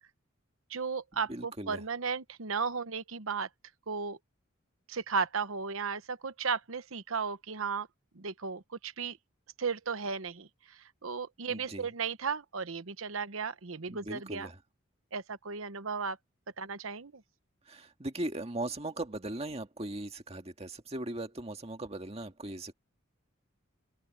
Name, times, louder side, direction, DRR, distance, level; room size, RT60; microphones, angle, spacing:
voice 1, 0.7-3.5 3.9-4.2 4.9-7.9 8.1-9.2 9.6-14.5 15.1-16.2 16.6-17.2, right 5 dB, 80° right, 1.0 m, -35 dB
voice 2, 1.3-1.8 11.5-11.9 13.9-14.6 17.6-22.7, right 1 dB, 30° right, 1.9 m, -39 dB
open air
head